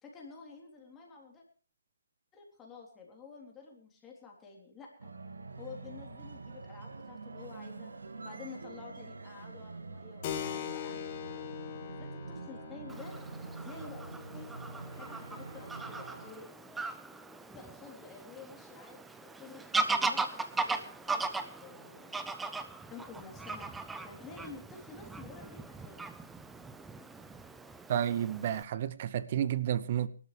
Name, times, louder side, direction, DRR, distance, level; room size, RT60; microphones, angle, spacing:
voice 1, 0.0-1.4 2.3-5.1 5.6-7.9 8.2-11.4 11.8-13.2 13.6-14.5 14.9-16.5 17.5-19.7 19.9-22.1 22.9-23.7 24.0-26.0, left 5 dB, 15° left, 3.6 m, -50 dB
sound 1, 5.0-16.3, right 3 dB, 65° right, 2.0 m, -46 dB
Keyboard (musical), 10.2-18.4, left 10 dB, 30° left, 1.8 m, -44 dB
Fowl / Bird vocalization bird call bird song, 12.9-28.6, right 3 dB, 5° right, 0.7 m, -38 dB
voice 2, 27.9-30.1, right 10 dB, 35° right, 0.8 m, -31 dB
23.5 x 12.5 x 3.4 m
figure-of-eight pair, 140°, 0 cm